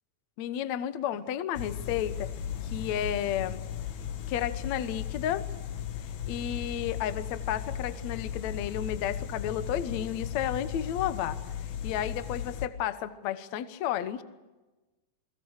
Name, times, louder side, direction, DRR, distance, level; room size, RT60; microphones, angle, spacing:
voice 1, 0.4-2.3 2.6-3.6 4.3-5.4 6.3-11.4 11.8-14.2, left 10 dB, 90° left, 12 dB, 1.5 m, -32 dB
sound 1, 1.5-12.7, left 9 dB, 60° left, 2.0 m, -36 dB
29.0 x 21.5 x 6.5 m, 1.1 s
omnidirectional pair, 5.1 m